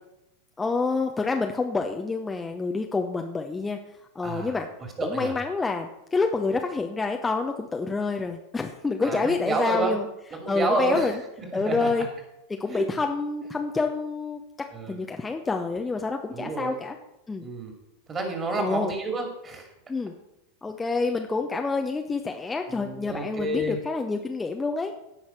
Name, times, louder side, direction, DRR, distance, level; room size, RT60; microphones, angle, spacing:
voice 1, 0.6-3.8 4.1-4.7 5.0-10.1 10.5-11.2 11.5-12.1 12.6-14.4 14.9-17.0 17.3-17.5 18.6-18.9 19.9-20.1 20.6-24.9, left 4 dB, 10° left, 4 dB, 0.7 m, -27 dB
voice 2, 4.2-4.5 5.0-5.3 9.0-9.9 10.3-11.1 11.4-11.9 12.7-12.8 14.7-15.0 16.3-16.7 17.4-17.7 18.1-19.7 22.7-23.8, right 2 dB, 20° right, 4 dB, 2.5 m, -29 dB
16.0 x 5.8 x 4.4 m, 0.89 s
figure-of-eight pair, 90°, 0 cm